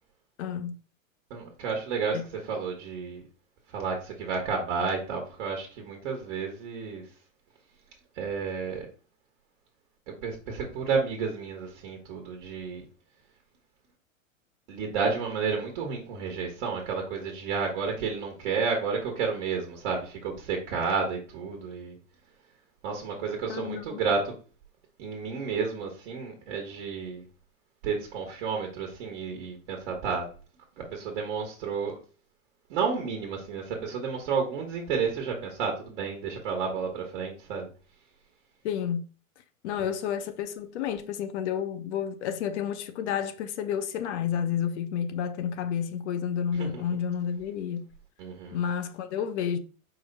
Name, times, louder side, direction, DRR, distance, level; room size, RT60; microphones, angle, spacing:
voice 1, 0.4-0.8 2.1-2.2 23.5-24.0 38.6-39.0 39.6-47.9 48.5-49.6, left 8 dB, 60° left, 0.6 m, -30 dB
voice 2, 1.3-3.2 3.7-7.1 8.2-8.9 10.1-12.8 14.7-22.0 22.8-24.3 25.0-27.2 27.8-30.3 30.8-31.9 32.7-37.7 46.6-46.8 48.2-48.6, right 5 dB, 55° right, 1.2 m, -31 dB
4.8 x 2.1 x 3.9 m
hypercardioid pair, 120°, 41 cm